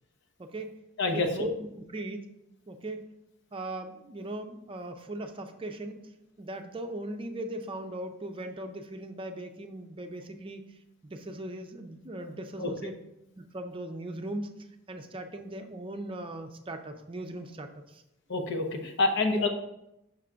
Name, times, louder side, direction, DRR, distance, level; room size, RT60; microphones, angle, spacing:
voice 1, 0.4-0.7 1.1-2.3 2.7-3.0 3.5-6.0 6.4-10.6 11.0-12.9 13.4-18.0, right 1 dB, 25° right, 5 dB, 0.5 m, -39 dB
voice 2, 18.3-19.5, left 3 dB, 60° left, 3 dB, 0.9 m, -27 dB
5.9 x 3.7 x 5.6 m, 0.85 s
head